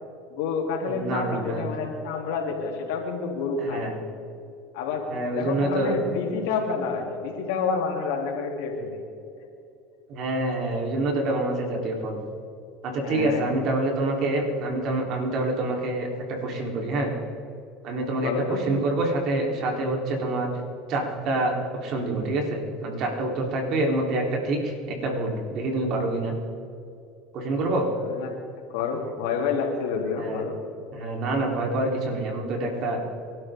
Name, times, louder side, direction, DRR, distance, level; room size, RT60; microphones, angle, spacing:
voice 1, 0.3-3.9 4.7-5.1 5.3-9.0 13.0-13.4 18.2-18.6 28.1-28.4 28.7-30.6, left 5 dB, 80° left, 1 dB, 3.2 m, -28 dB
voice 2, 0.9-1.7 3.6-3.9 5.1-5.9 10.1-12.2 12.8-17.1 17.8-20.5 20.9-21.5 21.8-26.3 27.3-27.9 30.2-30.4 30.9-33.0, right 2 dB, 55° right, 0 dB, 3.9 m, -26 dB
25.5 x 12.5 x 3.8 m, 2.6 s
supercardioid pair, 100°, 0 cm